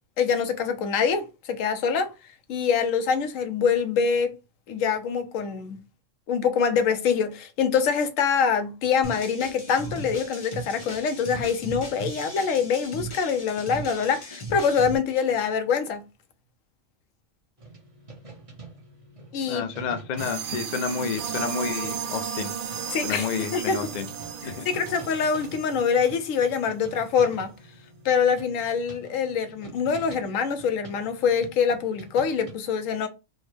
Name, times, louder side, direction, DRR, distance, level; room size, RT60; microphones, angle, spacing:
voice 1, 0.2-2.1 2.5-4.4 4.7-5.8 6.3-16.0 19.3-19.7 22.9-23.9 24.4-27.5 28.0-33.1, left 6 dB, 90° left, 1.0 m, -25 dB
sound 1, 9.0-15.0, right 1 dB, 30° left, 0.7 m, -37 dB
sound 2, 17.6-32.5, right 3 dB, 30° right, 0.9 m, -46 dB
voice 2, 19.5-22.5 23.0-24.0 24.4-24.7, left 6 dB, 70° left, 0.4 m, -30 dB
sound 3, 20.2-26.5, right 8 dB, 60° right, 0.5 m, -34 dB
3.6 x 2.1 x 3.2 m
omnidirectional pair, 1.3 m